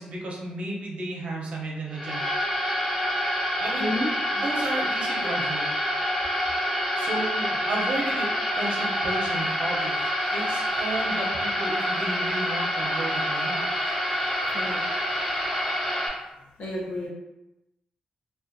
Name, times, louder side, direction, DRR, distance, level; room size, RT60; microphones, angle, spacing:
voice 1, 0.0-2.4 3.6-3.9 4.3-5.7 7.0-10.0 10.3-13.6, right 2 dB, 55° right, -3 dB, 0.6 m, -33 dB
sound 1, 1.9-16.1, equal, 5° left, 0.4 m, -27 dB
voice 2, 14.1-14.8 16.6-17.1, left 1 dB, 60° left, -3 dB, 0.7 m, -31 dB
2.4 x 2.1 x 2.5 m, 0.94 s
wide cardioid pair, 170°, 3 cm